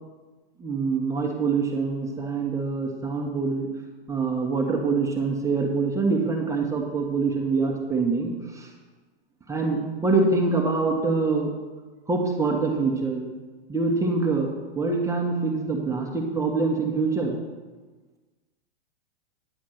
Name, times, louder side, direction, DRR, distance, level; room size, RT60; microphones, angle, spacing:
voice 1, 0.6-3.7 4.1-8.7 9.5-11.5 12.1-13.3 13.7-14.5 14.7-17.3, right 4 dB, 10° right, 0 dB, 1.4 m, -25 dB
10.0 x 5.1 x 7.8 m, 1.3 s
hypercardioid pair, 115°, 30 cm